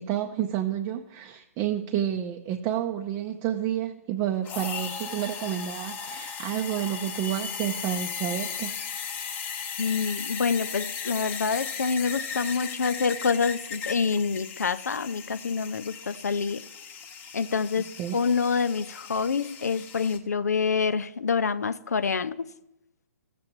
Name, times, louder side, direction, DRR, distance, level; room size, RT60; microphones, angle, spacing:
voice 1, 0.0-8.7 18.0-18.2, right 10 dB, 30° right, 0.6 m, -30 dB
Steamer in milk, 4.4-20.2, left 6 dB, 20° left, 0.9 m, -37 dB
voice 2, 9.8-16.6 17.3-17.9 18.1-22.5, left 5 dB, 85° left, 0.5 m, -27 dB
14.5 x 7.6 x 3.0 m
hypercardioid pair, 130°, 9 cm